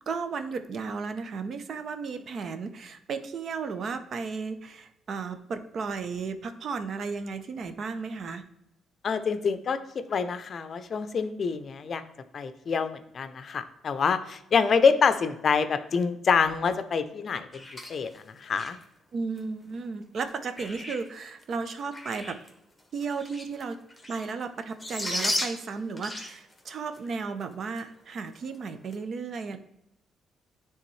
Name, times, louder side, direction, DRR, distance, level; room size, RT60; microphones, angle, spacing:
voice 1, 0.1-8.4 19.1-22.4 22.9-23.8 24.1-29.6, right 5 dB, 55° right, 10 dB, 0.6 m, -34 dB
voice 2, 9.0-12.0 12.3-17.6 17.9-18.8, left 5 dB, 50° left, 11 dB, 0.5 m, -26 dB
Birds at Feeder, 17.5-18.8 19.4-19.5 20.2-21.1 21.4-22.5 22.8-24.4 24.7-27.1 27.4-27.5 27.8-27.9 28.3-28.6 28.9-29.0, left 1 dB, 10° left, 1.2 m, -35 dB
9.7 x 3.5 x 3.1 m, 0.81 s
cardioid pair, 90°, 0 cm